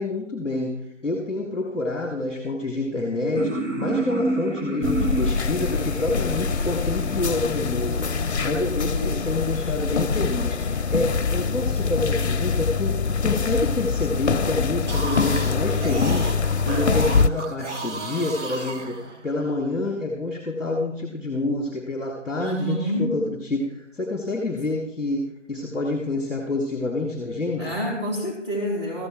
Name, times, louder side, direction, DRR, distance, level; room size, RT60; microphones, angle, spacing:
voice 1, 0.0-27.8, left 2 dB, ahead, -7 dB, 0.6 m, -28 dB
sound 1, 3.3-8.0, right 3 dB, 85° right, 2.0 m, -30 dB
sound 2, 4.8-17.3, left 5 dB, 60° left, 0.5 m, -24 dB
voice 2, 8.9-9.3 11.4-12.0 22.4-23.3 27.6-29.1, equal, 20° right, -1 dB, 2.9 m, -29 dB
sound 3, 14.9-19.5, right 2 dB, 65° right, 1.2 m, -33 dB
14.0 x 5.9 x 4.4 m, 0.79 s
figure-of-eight pair, 165°, 38 cm